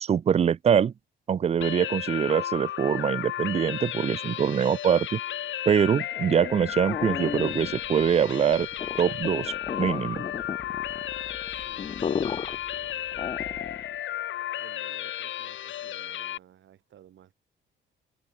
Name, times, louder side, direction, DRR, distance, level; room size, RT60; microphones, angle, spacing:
voice 1, 0.0-0.9 1.3-5.2 5.7-8.7 9.0-10.2, right 8 dB, 30° right, 0.4 m, -24 dB
sound 1, 1.6-16.4, left 12 dB, 75° left, 2.1 m, -34 dB
sound 2, 6.1-13.9, left 6 dB, 30° left, 0.4 m, -35 dB
voice 2, 11.5-13.8 14.6-17.3, right 11 dB, 70° right, 7.1 m, -55 dB
open air
cardioid pair, 90°, 20 cm